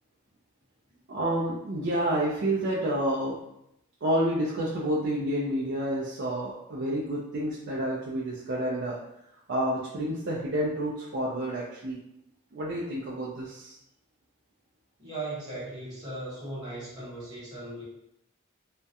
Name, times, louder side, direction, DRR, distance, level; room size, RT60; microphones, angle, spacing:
voice 1, 1.1-3.4 4.0-9.0 9.5-12.0 12.5-13.8, right 1 dB, 55° right, -6 dB, 0.4 m, -29 dB
voice 2, 15.0-17.8, right 2 dB, 20° right, -9 dB, 1.1 m, -38 dB
2.3 x 2.1 x 2.7 m, 0.80 s
head